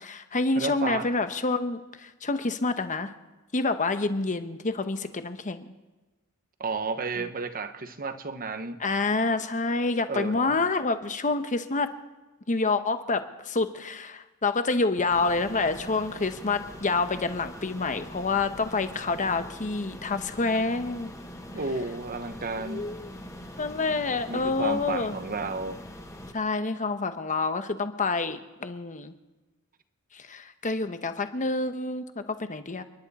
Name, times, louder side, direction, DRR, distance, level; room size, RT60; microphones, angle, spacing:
voice 1, 0.0-3.1 3.5-5.7 8.8-11.9 12.5-21.1 22.6-23.1 23.6-25.1 26.3-29.1 30.1-32.8, left 3 dB, 35° left, 1.0 m, -28 dB
voice 2, 0.6-1.1 6.6-8.8 10.1-10.6 21.5-22.8 24.3-25.8, right 4 dB, 40° right, 1.0 m, -32 dB
stationairkoffie LR, 15.1-26.3, left 1 dB, 15° left, 1.4 m, -43 dB
30.0 x 11.0 x 4.2 m
head